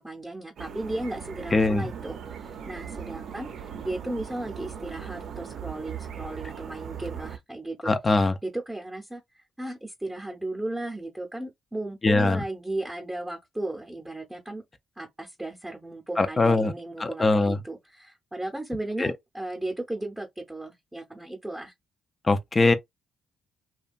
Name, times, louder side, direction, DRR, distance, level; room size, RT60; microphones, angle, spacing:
voice 1, 0.0-14.6 15.0-21.7, right 2 dB, 10° right, 0.7 m, -35 dB
sound 1, 0.6-7.4, right 8 dB, 65° right, 0.5 m, -39 dB
voice 2, 1.5-1.9 7.8-8.3 12.0-12.4 16.2-16.7 17.0-17.6 19.0-19.1 22.2-22.7, left 3 dB, 25° left, 0.4 m, -21 dB
2.8 x 2.2 x 2.5 m
cardioid pair, 90°, 0 cm